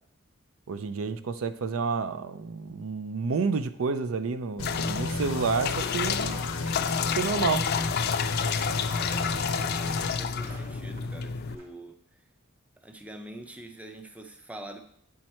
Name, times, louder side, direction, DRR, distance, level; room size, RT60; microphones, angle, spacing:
voice 1, 0.7-6.4 7.1-7.7, right 4 dB, 75° right, 11 dB, 0.5 m, -29 dB
sound 1, 4.6-10.1, left 3 dB, 90° left, 0.9 m, -34 dB
sound 2, 4.6-11.6, left 6 dB, 50° left, 0.4 m, -30 dB
sound 3, 5.7-11.6, right 1 dB, 50° right, 2.0 m, -51 dB
voice 2, 9.0-12.0 12.8-14.8, right 1 dB, 5° right, 5 dB, 0.5 m, -45 dB
8.4 x 4.6 x 4.4 m, 0.68 s
head